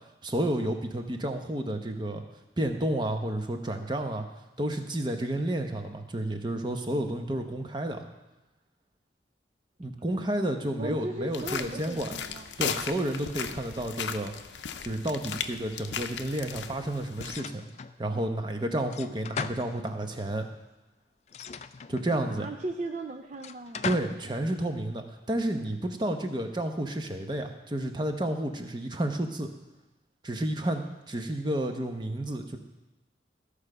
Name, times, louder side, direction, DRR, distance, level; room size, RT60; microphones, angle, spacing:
voice 1, 0.2-2.2 2.6-4.3 4.6-8.0 9.8-12.2 12.6-14.3 14.8-17.7 18.0-20.5 21.9-22.5 23.8-29.5 30.2-32.6, right 1 dB, 25° right, 5 dB, 0.8 m, -31 dB
voice 2, 10.8-12.5 22.2-24.2, right 2 dB, 40° right, 5 dB, 0.4 m, -37 dB
sound 1, 11.3-17.4, left 7 dB, 80° left, 0.6 m, -36 dB
sound 2, 17.2-18.0 18.9-20.2 21.3-22.3 23.4-24.3, left 5 dB, 40° left, 0.3 m, -38 dB
14.0 x 4.9 x 6.7 m, 1.0 s
head